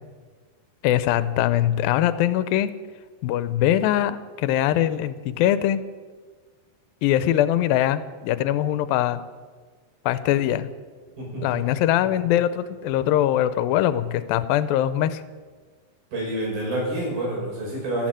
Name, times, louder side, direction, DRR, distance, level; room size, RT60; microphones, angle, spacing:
voice 1, 0.8-2.7 3.2-5.8 7.0-9.2 10.1-10.7 11.4-15.2, left 12 dB, 80° left, 14 dB, 2.5 m, -22 dB
voice 2, 11.2-11.6 16.1-18.1, right 1 dB, 75° right, -3 dB, 8.0 m, -28 dB
14.0 x 11.5 x 8.9 m, 1.5 s
omnidirectional pair, 4.2 m